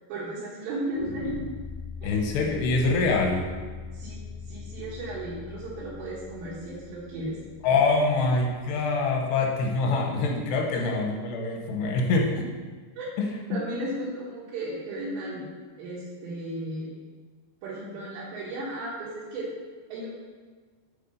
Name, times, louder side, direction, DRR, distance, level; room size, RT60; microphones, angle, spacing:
voice 1, 0.1-1.4 2.0-2.1 3.9-4.2 4.5-7.4 13.0-13.1 13.5-15.5 15.8-16.9 17.6-19.5 19.9-20.1, right 1 dB, 85° right, -11 dB, 3.9 m, -34 dB
sound 1, 0.9-9.9, left 4 dB, 65° right, 1.8 m, -42 dB
voice 2, 2.0-3.5 7.6-12.5 13.2-13.6, left 3 dB, 80° left, 1 dB, 2.9 m, -25 dB
7.4 x 4.2 x 5.5 m, 1.5 s
omnidirectional pair, 4.9 m